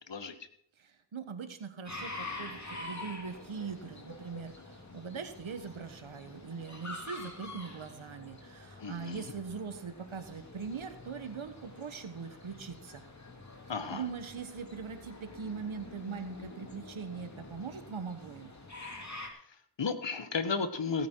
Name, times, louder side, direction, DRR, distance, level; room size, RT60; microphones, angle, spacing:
voice 1, 0.8-13.0 13.9-18.5, right 6 dB, 90° right, 9 dB, 1.4 m, -41 dB
sound 1, 1.9-19.3, left 2 dB, 35° left, 2.6 m, -47 dB
voice 2, 8.8-9.3 13.7-14.0 19.5-21.1, left 5 dB, 65° left, 10 dB, 1.4 m, -34 dB
16.5 x 9.5 x 4.6 m, 0.66 s
cardioid pair, 45°, 46 cm